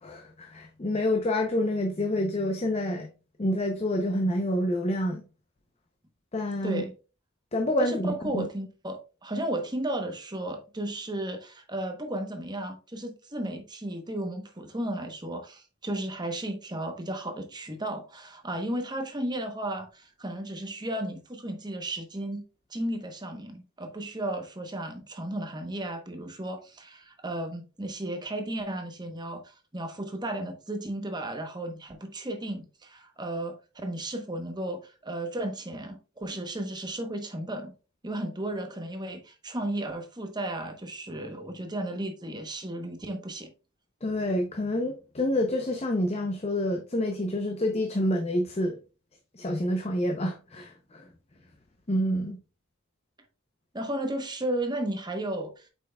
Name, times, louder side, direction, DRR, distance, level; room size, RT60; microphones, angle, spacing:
voice 1, 0.0-3.1 3.4-5.2 6.3-6.8 7.5-8.4 44.0-48.8 49.3-51.1 51.9-52.4, left 1 dB, 30° left, 0.7 m, -28 dB
voice 2, 6.6-6.9 7.8-22.4 22.7-37.7 38.0-43.5 53.7-55.7, right 1 dB, 20° right, 0.9 m, -34 dB
7.6 x 5.5 x 2.3 m
head